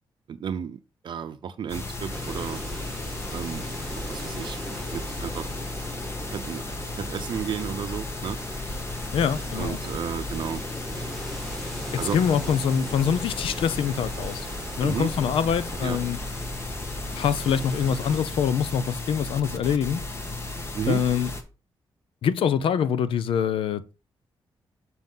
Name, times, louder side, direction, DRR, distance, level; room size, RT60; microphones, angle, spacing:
voice 1, 0.3-2.6 3.3-3.6 3.9-4.6 4.9-5.5 6.3-6.6 7.0-8.4 9.5-10.6 12.0-12.2 14.8-15.1 15.8-16.0 20.7-21.0, right 8 dB, 60° right, 0.6 m, -32 dB
sound 1, 1.7-21.4, left 2 dB, 30° left, 1.5 m, -35 dB
sound 2, 2.1-18.2, equal, 5° left, 2.5 m, -39 dB
voice 2, 9.1-9.8 11.9-14.5 14.8-16.2 17.2-20.0 20.9-21.3 22.2-23.9, left 7 dB, 80° left, 0.7 m, -24 dB
7.2 x 6.1 x 3.8 m
cardioid pair, 115°, 9 cm